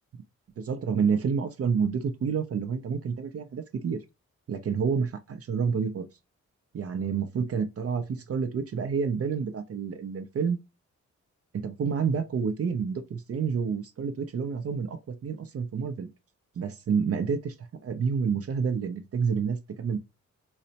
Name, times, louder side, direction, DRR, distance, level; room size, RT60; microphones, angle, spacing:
voice 1, 0.6-4.0 4.5-6.1 6.7-10.6 11.5-16.1 16.6-17.5 17.8-20.0, right 6 dB, 50° right, 0.5 m, -29 dB
4.0 x 2.1 x 2.7 m
cardioid pair, 85°, 30 cm